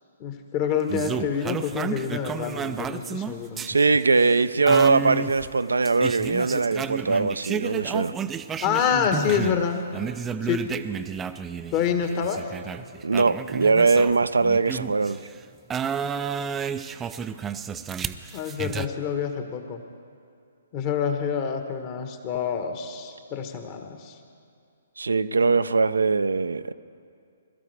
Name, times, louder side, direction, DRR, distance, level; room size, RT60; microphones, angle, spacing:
voice 1, 0.2-3.6 8.6-9.8 10.4-10.6 11.7-12.4 18.3-19.8 20.7-24.2, left 7 dB, 30° left, 6 dB, 1.3 m, -27 dB
sound 1, 0.9-9.6 9.9-15.2 15.7-18.9, right 7 dB, 15° right, 0.4 m, -32 dB
voice 2, 3.7-8.1 13.0-15.2 25.0-26.7, right 4 dB, 75° right, 12 dB, 0.4 m, -21 dB
21.5 x 13.0 x 3.4 m, 2.4 s
figure-of-eight pair, 125°, 0 cm